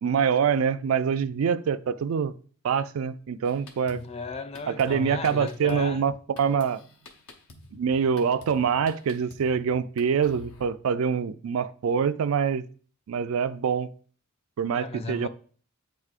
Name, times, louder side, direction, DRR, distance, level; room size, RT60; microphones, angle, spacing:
voice 1, 0.0-2.3 2.6-4.0 4.7-6.8 7.7-12.6 13.1-13.9 14.6-15.3, right 6 dB, 70° right, 0.4 m, -25 dB
Drum kit, 3.4-10.7, left 2 dB, 80° left, 0.9 m, -50 dB
voice 2, 3.9-6.0 14.7-15.3, left 4 dB, 30° left, 0.4 m, -35 dB
8.1 x 4.7 x 2.5 m
head